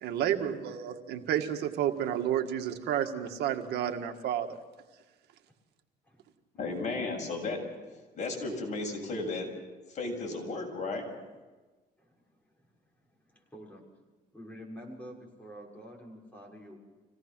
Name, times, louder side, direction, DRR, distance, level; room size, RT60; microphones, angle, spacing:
voice 1, 0.0-4.5, right 10 dB, 75° right, 5 dB, 1.8 m, -31 dB
voice 2, 6.6-7.6 8.1-9.5 9.9-11.0, left 3 dB, 45° left, 1 dB, 7.5 m, -34 dB
voice 3, 13.0-13.8 14.3-16.8, equal, 10° left, -2 dB, 6.4 m, -48 dB
26.0 x 18.0 x 6.2 m, 1.2 s
cardioid pair, 110°, 17 cm